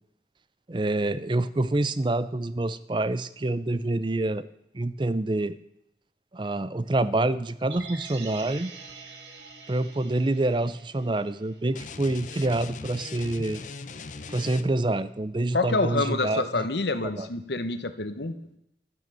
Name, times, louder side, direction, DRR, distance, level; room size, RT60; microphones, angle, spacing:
voice 1, 0.7-4.5 4.7-5.6 6.3-8.7 9.7-13.6 14.3-16.5 17.2-17.3, right 2 dB, 25° right, 15 dB, 0.5 m, -27 dB
sound 1, 7.7-11.9 12.2-12.3, right 4 dB, 80° right, 1.6 m, -45 dB
sound 2, 11.7-15.0, left 4 dB, 45° left, 0.7 m, -40 dB
voice 2, 15.5-18.3, left 3 dB, 75° left, 10 dB, 1.1 m, -27 dB
12.0 x 9.4 x 6.8 m, 0.79 s
head